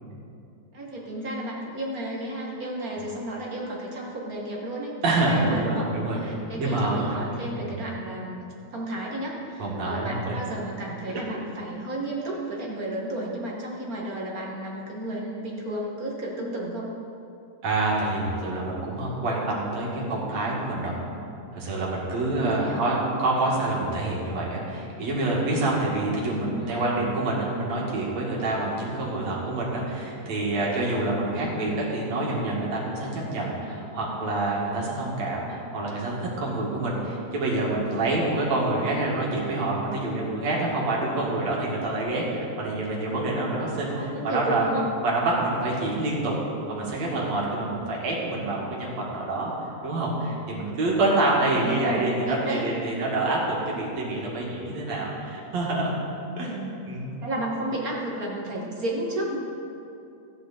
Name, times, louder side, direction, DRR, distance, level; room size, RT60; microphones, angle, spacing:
voice 1, 0.7-8.4 8.7-16.9 22.4-22.8 26.3-27.0 31.4-31.8 43.9-44.9 51.6-52.6 56.5-56.9 57.2-59.4, right 1 dB, 50° right, -3 dB, 1.1 m, -32 dB
voice 2, 5.0-7.1 7.5-7.9 9.6-10.4 11.1-11.2 17.6-20.9 21.5-44.7 45.0-46.3 46.7-49.5 49.8-56.0 56.4-56.5 56.9-57.1, right 2 dB, 65° right, -4 dB, 3.2 m, -27 dB
14.5 x 9.8 x 4.2 m, 2.7 s
omnidirectional pair, 3.4 m